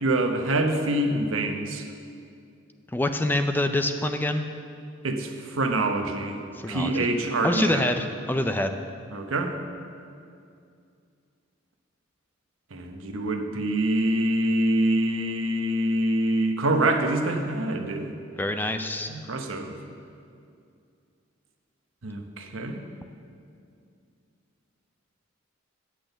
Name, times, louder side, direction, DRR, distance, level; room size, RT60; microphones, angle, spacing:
voice 1, 0.0-1.9 5.0-6.4 6.7-7.8 9.1-9.5 12.7-18.1 19.1-19.8 22.0-22.9, right 1 dB, 85° right, 5 dB, 0.9 m, -25 dB
voice 2, 2.9-4.4 6.6-7.1 7.4-8.8 18.4-19.1, left 1 dB, 10° left, 7 dB, 0.4 m, -26 dB
8.7 x 6.1 x 7.9 m, 2.4 s
head